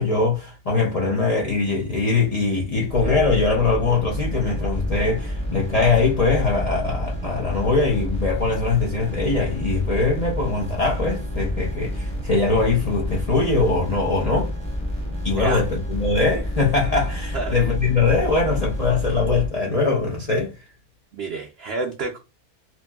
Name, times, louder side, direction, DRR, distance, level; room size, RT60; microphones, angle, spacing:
voice 1, 0.0-14.5 15.2-20.5, left 3 dB, 65° left, 0.3 m, -22 dB
sound 1, 2.9-19.5, equal, 5° left, 0.5 m, -29 dB
voice 2, 21.1-22.2, right 3 dB, 85° right, 0.5 m, -28 dB
2.9 x 2.6 x 2.2 m
omnidirectional pair, 1.6 m